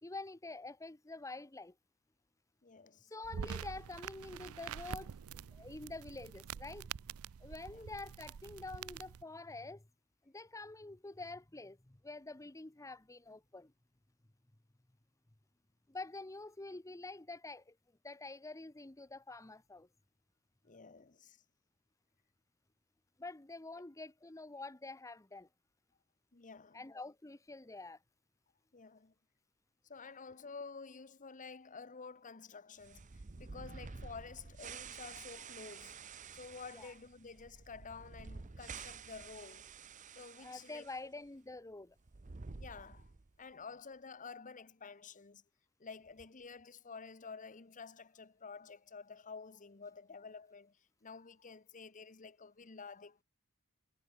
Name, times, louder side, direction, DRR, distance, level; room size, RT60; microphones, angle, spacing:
voice 1, 0.0-1.7 3.1-6.9 7.4-9.8 10.3-13.7 15.9-17.7 18.0-19.9 23.2-25.5 26.7-28.0 36.7-36.9 40.4-41.9, left 2 dB, 15° left, 0.8 m, -47 dB
voice 2, 2.6-3.1 7.7-7.8 20.6-21.4 26.3-26.9 28.7-29.1 29.8-39.7 40.1-41.1 42.6-43.1 43.4-45.4 45.8-53.2, left 5 dB, 35° left, 1.0 m, -51 dB
sound 1, 3.2-9.2, right 7 dB, 70° right, 0.4 m, -46 dB
sound 2, 32.8-41.0 41.3-41.4 42.0-43.4, right 5 dB, 35° right, 0.7 m, -50 dB
head